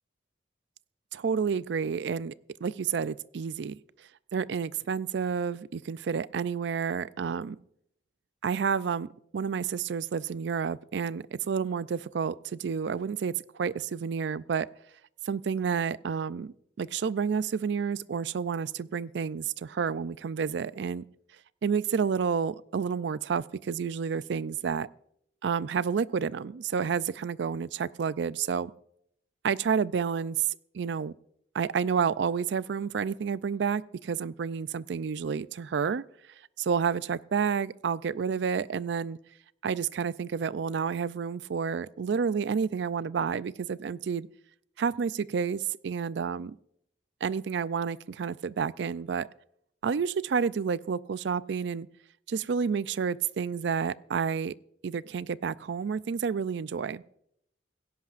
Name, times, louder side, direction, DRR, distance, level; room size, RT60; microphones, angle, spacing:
voice 1, 1.1-2.3 2.6-3.8 4.3-7.6 8.4-14.7 15.3-21.0 21.6-24.9 25.4-28.7 29.4-30.5 30.7-31.1 31.5-36.0 36.6-39.2 39.6-44.3 44.8-46.5 47.2-49.3 49.8-51.9 52.3-54.5 54.8-57.0, right 6 dB, 70° right, 18 dB, 0.4 m, -30 dB
17.0 x 16.0 x 2.5 m, 0.71 s
head